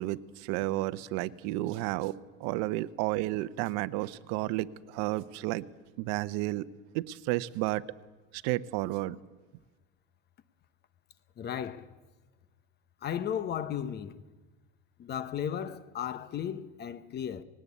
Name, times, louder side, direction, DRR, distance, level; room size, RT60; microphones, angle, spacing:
voice 1, 0.0-2.1 2.4-5.6 6.0-6.7 6.9-7.8 8.4-9.2, right 17 dB, 65° right, 0.8 m, -32 dB
voice 2, 11.4-11.9 13.0-14.1 15.0-17.4, left 9 dB, 35° left, 1.0 m, -35 dB
20.0 x 18.0 x 8.4 m
supercardioid pair, 130°, 29 cm